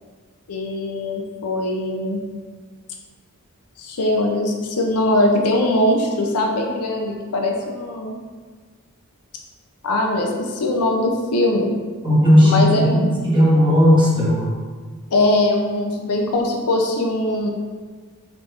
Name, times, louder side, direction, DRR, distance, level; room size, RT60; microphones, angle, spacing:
voice 1, 0.5-2.2 3.8-8.1 9.8-11.7 12.4-13.1 15.1-17.5, left 1 dB, 85° left, 1 dB, 0.6 m, -21 dB
voice 2, 12.0-14.5, equal, 20° right, -7 dB, 1.3 m, -15 dB
4.5 x 4.3 x 2.5 m, 1.5 s
head